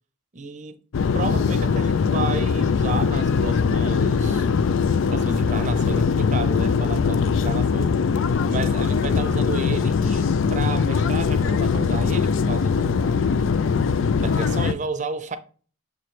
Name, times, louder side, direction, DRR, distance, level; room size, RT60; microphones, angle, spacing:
voice 1, 0.3-0.8 1.1-4.5 4.9-13.4 14.2-15.4, right 3 dB, 35° right, 0.6 m, -32 dB
sound 1, 0.9-14.7, left 5 dB, 65° left, 0.4 m, -21 dB
7.4 x 3.2 x 4.3 m
head